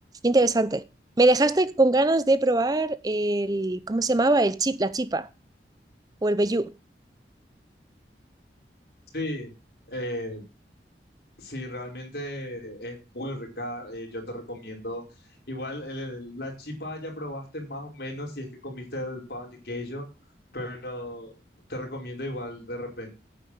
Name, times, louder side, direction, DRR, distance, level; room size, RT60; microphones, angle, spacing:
voice 1, 0.2-0.8 1.2-5.3 6.2-6.7, right 2 dB, 20° right, 0.5 m, -22 dB
voice 2, 9.1-9.5 9.9-10.4 11.4-20.1 20.5-21.3 21.7-23.1, left 1 dB, 60° left, 5.2 m, -35 dB
10.0 x 9.1 x 6.4 m
head